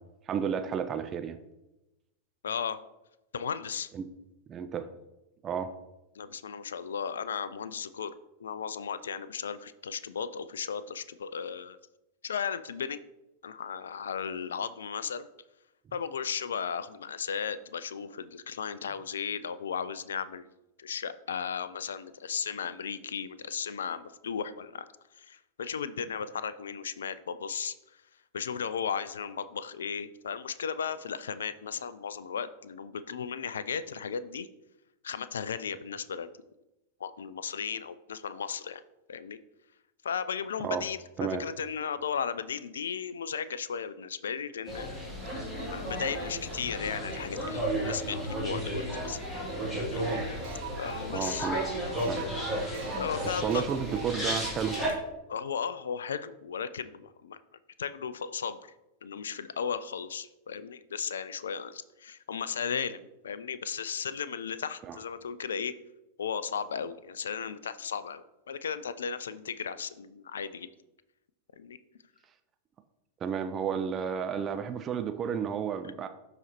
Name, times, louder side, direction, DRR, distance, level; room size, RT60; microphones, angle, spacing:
voice 1, 0.3-1.4 3.9-4.1 4.5-4.9 5.4-5.7 40.6-40.8 41.2-41.4 51.1-51.6 52.0-52.2 53.4-54.8 64.9-65.0 73.2-76.1, right 7 dB, 25° right, 9 dB, 0.4 m, -32 dB
voice 2, 2.4-2.8 3.3-3.9 6.1-8.1 8.4-11.8 12.2-13.0 13.4-15.3 15.9-20.5 20.8-24.9 25.1-28.0 28.3-34.5 35.0-36.3 37.0-38.8 39.1-39.4 40.0-45.0 45.7-49.2 49.9-50.2 50.8-51.5 52.9-53.7 55.3-57.4 57.8-58.7 59.0-65.7 66.2-70.7 71.6-71.8, left 7 dB, 65° left, 15 dB, 0.3 m, -35 dB
sound 1, 44.7-54.9, equal, 10° left, 2.6 m, -33 dB
sound 2, 50.0-55.0, right 10 dB, 60° right, 0.8 m, -44 dB
12.0 x 4.0 x 3.0 m, 0.95 s
figure-of-eight pair, 90°, 0 cm